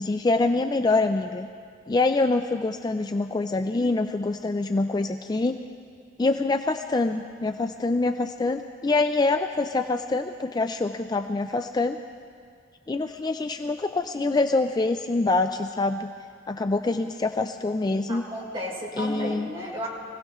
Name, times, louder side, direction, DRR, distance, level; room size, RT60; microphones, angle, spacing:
voice 1, 0.0-1.5 1.9-5.6 6.2-12.0 12.9-16.1 16.5-18.2 19.0-19.5, left 3 dB, 20° left, 7 dB, 0.3 m, -25 dB
voice 2, 18.1-19.9, equal, 30° right, -4 dB, 3.8 m, -33 dB
24.5 x 17.0 x 3.1 m, 2.2 s
head